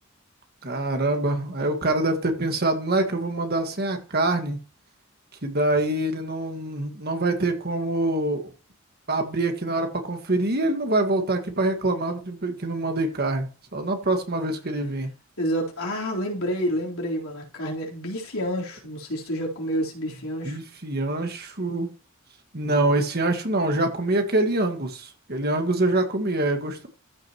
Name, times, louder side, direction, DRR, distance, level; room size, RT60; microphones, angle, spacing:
voice 1, 0.6-4.6 5.4-8.5 9.1-15.1 20.4-21.9 22.5-26.9, right 2 dB, 45° right, 5 dB, 1.7 m, -25 dB
voice 2, 15.4-20.6, equal, 80° left, -2 dB, 3.9 m, -29 dB
14.0 x 6.4 x 3.0 m, 0.35 s
head